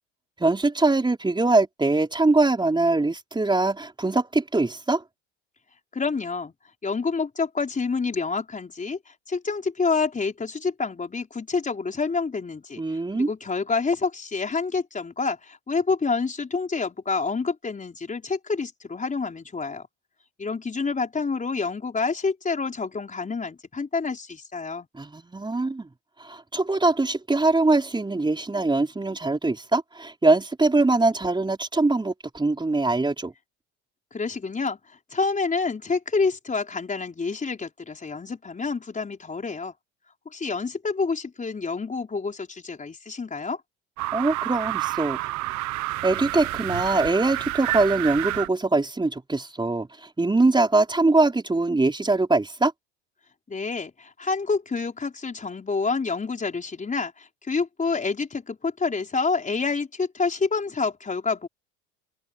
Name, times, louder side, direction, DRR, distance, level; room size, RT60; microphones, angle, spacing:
voice 1, 0.4-5.0 12.8-13.3 25.0-25.9 26.2-33.3 44.1-45.2 46.0-52.7, right 2 dB, 15° right, 4.4 m, -22 dB
voice 2, 5.9-6.5 6.8-19.9 20.4-24.9 34.1-39.7 40.2-43.6 53.5-61.5, left 4 dB, 25° left, 4.9 m, -28 dB
sound 1, 44.0-48.5, right 18 dB, 60° right, 1.3 m, -29 dB
hypercardioid pair, 80°, 33 cm